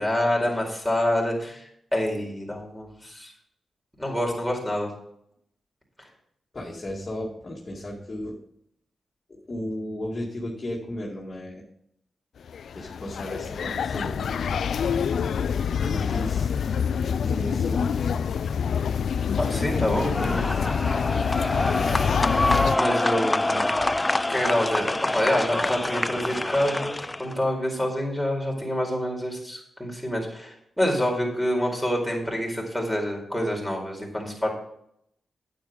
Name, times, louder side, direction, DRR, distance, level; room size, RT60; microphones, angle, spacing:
voice 1, 0.0-3.3 4.0-4.9 19.4-20.1 22.7-23.7 24.3-34.5, left 1 dB, ahead, -1 dB, 4.5 m, -27 dB
voice 2, 6.5-8.4 9.3-11.6 12.7-14.5 15.8-16.5 17.2-17.9 19.4-20.7 23.8-23.9, left 1 dB, 40° left, -3 dB, 2.3 m, -34 dB
sound 1, 12.5-22.8, left 7 dB, 75° left, 0.4 m, -26 dB
sound 2, 20.0-27.3, left 2 dB, 20° left, 0.4 m, -26 dB
9.2 x 8.5 x 5.2 m, 0.74 s
cardioid pair, 55°, 0 cm